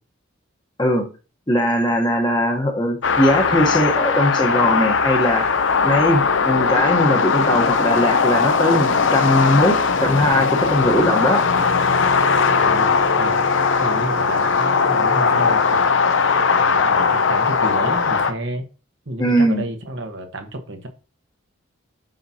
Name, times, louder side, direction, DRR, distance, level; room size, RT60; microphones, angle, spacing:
voice 1, 1.5-5.5 5.8-11.4 19.2-19.7, equal, 20° left, 1.1 m, -20 dB
sound 1, 3.0-18.3, left 5 dB, 65° left, 0.6 m, -19 dB
voice 2, 12.5-13.4 13.8-16.1 16.5-18.7 19.0-20.9, right 1 dB, 60° right, 1.3 m, -31 dB
7.7 x 6.0 x 2.8 m
head